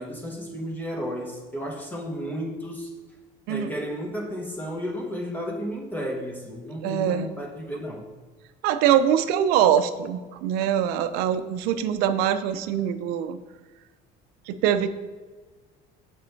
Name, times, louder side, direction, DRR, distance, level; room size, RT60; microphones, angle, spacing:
voice 1, 0.0-2.9 3.5-8.1, equal, 10° left, -1 dB, 1.0 m, -33 dB
voice 2, 6.8-7.3 8.6-13.4 14.5-14.9, right 9 dB, 85° right, 11 dB, 0.6 m, -23 dB
7.4 x 5.5 x 4.5 m, 1.4 s
cardioid pair, 155°, 16 cm